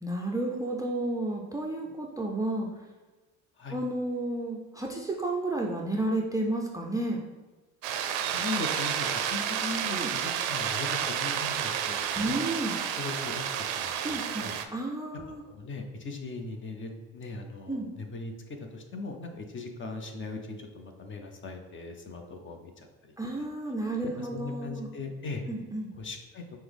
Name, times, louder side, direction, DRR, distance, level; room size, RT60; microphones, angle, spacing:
voice 1, 0.0-2.7 3.7-7.2 9.9-10.1 12.1-12.8 14.0-14.4 14.7-15.4 17.7-17.9 23.2-24.9 25.5-25.9, right 2 dB, 10° right, -1 dB, 0.4 m, -31 dB
sound 1, 7.8-14.7, right 9 dB, 80° right, 0.5 m, -31 dB
voice 2, 8.3-12.4 13.0-14.5 15.5-18.3 18.7-23.1 23.4-23.5 24.2-25.4 25.9-26.6, left 3 dB, 30° left, 4 dB, 0.6 m, -39 dB
5.5 x 2.1 x 3.4 m, 1.2 s
supercardioid pair, 80°, 37 cm